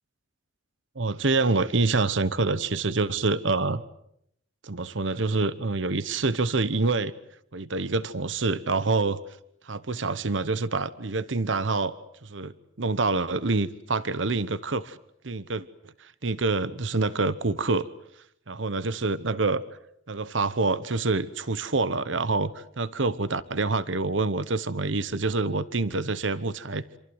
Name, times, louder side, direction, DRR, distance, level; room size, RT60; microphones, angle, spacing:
voice 1, 0.9-3.8 4.6-7.1 7.5-9.2 9.6-12.0 12.2-15.0 15.2-15.6 16.0-17.9 18.5-19.6 20.1-26.8, right 3 dB, 75° right, 16 dB, 1.0 m, -26 dB
27.5 x 26.0 x 8.0 m, 0.73 s
head